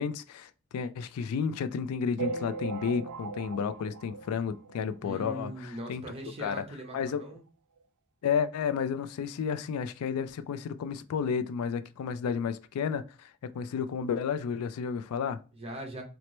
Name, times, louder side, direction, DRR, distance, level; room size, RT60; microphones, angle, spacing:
voice 1, 0.0-6.0 6.4-6.6 6.9-7.2 8.2-15.4, left 6 dB, 80° left, 0.3 m, -32 dB
sound 1, 2.2-5.0 5.5-5.6 5.8-6.0 6.2-6.3 7.2-7.3 7.8-7.9, right 4 dB, 85° right, 0.4 m, -38 dB
voice 2, 5.0-7.4 15.5-16.0, right 1 dB, 30° right, 0.9 m, -40 dB
4.3 x 2.0 x 3.0 m
head